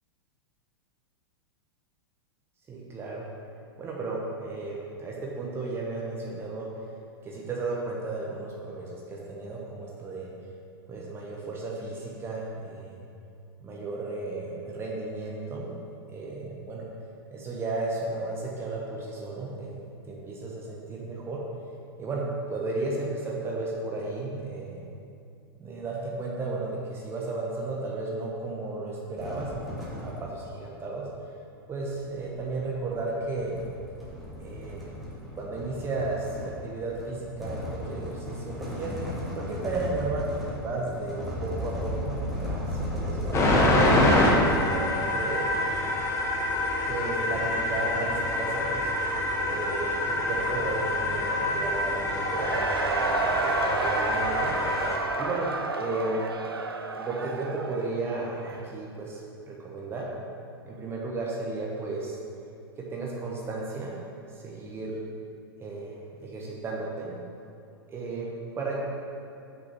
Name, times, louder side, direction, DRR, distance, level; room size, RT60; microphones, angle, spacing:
voice 1, 2.7-3.2 3.8-6.7 7.2-10.3 10.9-13.0 13.6-15.7 16.1-16.9 17.3-19.8 20.1-21.4 22.0-24.8 25.6-31.1 31.7-33.6 34.4-34.9 35.3-38.9 39.3-43.6 44.3-45.7 46.9-48.9 49.4-54.5 55.2-56.3 56.9-59.2 59.5-60.1 60.7-62.2 62.8-64.0 64.4-65.0 65.6-67.2 67.9-68.3 68.5-68.8, right 2 dB, 20° right, -3 dB, 1.2 m, -34 dB
sound 1, 29.2-30.5 31.7-43.9, left 1 dB, ahead, 1.7 m, -36 dB
sound 2, 43.3-55.0, left 1 dB, 20° left, 1.1 m, -26 dB
Cheering / Crowd, 52.0-58.7, right 4 dB, 75° right, 0.5 m, -31 dB
6.1 x 5.3 x 6.1 m, 2.5 s
figure-of-eight pair, 90°, 13 cm